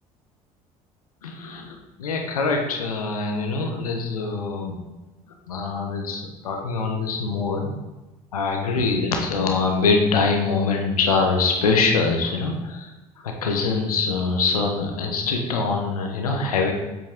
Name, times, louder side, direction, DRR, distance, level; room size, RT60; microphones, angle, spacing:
voice 1, 1.2-4.8 5.5-7.8 8.3-12.9 13.2-16.7, left 4 dB, 80° left, 3 dB, 0.9 m, -24 dB
7.8 x 5.3 x 3.6 m, 1.1 s
figure-of-eight pair, 60°, 19 cm